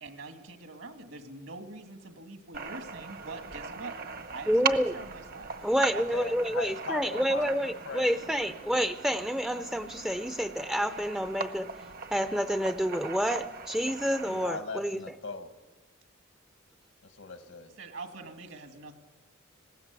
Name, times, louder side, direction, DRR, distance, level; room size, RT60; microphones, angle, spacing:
voice 1, 0.0-4.0 4.3-5.5 5.9-6.3 7.1-7.5 17.8-19.0, right 3 dB, 70° right, 5 dB, 2.3 m, -44 dB
sound 1, 2.5-14.5, right 5 dB, 45° right, 0.9 m, -39 dB
voice 2, 4.5-5.0 5.6-11.7 12.1-15.0, equal, 5° right, 9 dB, 0.6 m, -29 dB
voice 3, 6.0-8.1 14.3-15.5 17.0-17.7, left 4 dB, 80° left, 7 dB, 1.8 m, -39 dB
19.5 x 17.0 x 8.2 m, 1.2 s
head